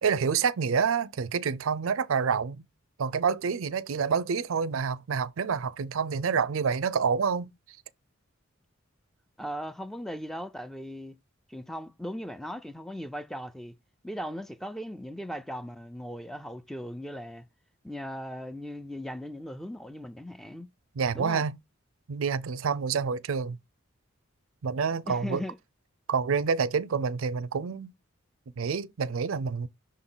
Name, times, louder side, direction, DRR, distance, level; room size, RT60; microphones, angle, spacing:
voice 1, 0.0-2.6 3.0-7.5 21.0-21.5 22.1-23.6 24.6-25.4 26.1-27.9 28.6-29.7, right 6 dB, 80° right, 0.5 m, -28 dB
voice 2, 9.4-11.2 11.5-13.7 14.0-17.5 17.8-20.7 21.1-21.5 25.1-25.6, equal, ahead, 0.3 m, -38 dB
6.4 x 3.9 x 3.8 m
head